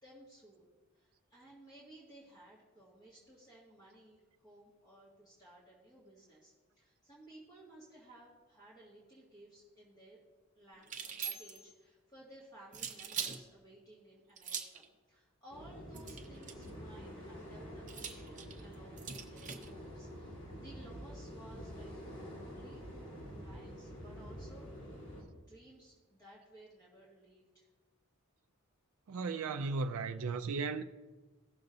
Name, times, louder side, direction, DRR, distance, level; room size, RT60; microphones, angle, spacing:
voice 1, 0.0-10.2 10.5-24.7 25.1-25.2 25.5-27.7, right 1 dB, 20° left, 1.9 m, -58 dB
sound 1, 10.8-11.7 12.7-13.4 14.4-14.8 15.9-16.7 17.9-19.7, right 7 dB, 35° right, 0.8 m, -42 dB
sound 2, 15.5-25.2, equal, 60° left, 2.5 m, -48 dB
voice 2, 29.1-30.8, right 4 dB, 85° right, 0.4 m, -35 dB
17.0 x 6.7 x 2.6 m
head